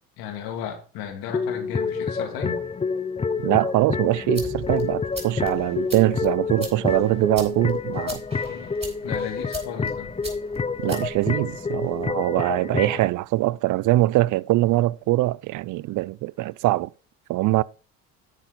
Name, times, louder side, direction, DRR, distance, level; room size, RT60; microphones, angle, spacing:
voice 1, 0.2-2.6 8.5-8.7 9.0-10.1, left 8 dB, 80° left, 2.7 m, -35 dB
sound 1, 1.3-13.1, left 5 dB, 15° left, 0.7 m, -28 dB
voice 2, 3.4-8.2 10.8-16.9 17.3-17.6, right 17 dB, 55° right, 0.5 m, -22 dB
sound 2, 4.0-12.1, right 2 dB, 15° right, 4.8 m, -41 dB
10.5 x 7.6 x 4.1 m
supercardioid pair, 75°, 36 cm